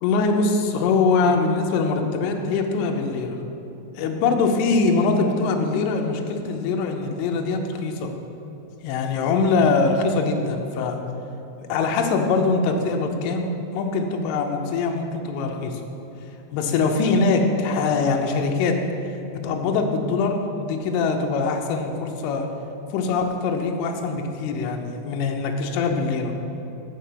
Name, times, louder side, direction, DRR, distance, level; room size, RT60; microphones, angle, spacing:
voice 1, 0.0-3.4 3.9-8.1 8.8-11.0 11.6-15.8 16.5-18.8 19.4-22.5 22.9-26.3, left 4 dB, 80° left, 3 dB, 3.1 m, -23 dB
6.9 x 6.6 x 7.7 m, 3.0 s
omnidirectional pair, 5.8 m